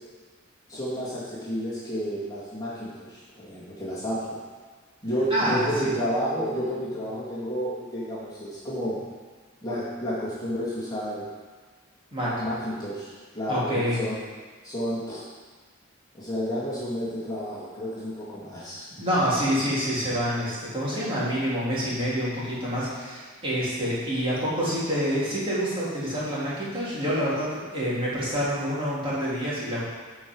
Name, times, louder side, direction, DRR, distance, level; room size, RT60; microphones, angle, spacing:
voice 1, 0.7-4.4 5.0-9.0 9.6-11.3 12.2-14.2 14.6-15.2 16.1-19.0, equal, 20° left, -9 dB, 2.1 m, -31 dB
voice 2, 5.3-5.9 12.1-12.3 13.5-14.0 19.0-29.8, equal, 25° right, -9 dB, 3.2 m, -27 dB
13.0 x 4.9 x 4.7 m, 1.5 s
head